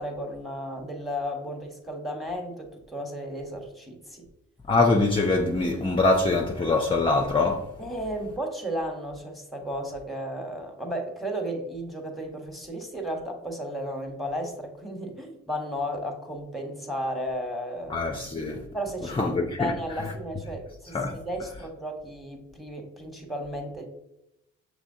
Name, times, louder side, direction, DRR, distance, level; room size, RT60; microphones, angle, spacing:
voice 1, 0.0-4.3 7.8-18.0 18.7-23.9, equal, ahead, 1.2 m, -34 dB
voice 2, 4.7-7.7 17.9-18.6 19.2-19.7 20.9-21.2, left 3 dB, 15° left, 0.6 m, -23 dB
6.1 x 3.2 x 2.7 m
supercardioid pair, 50°, 32 cm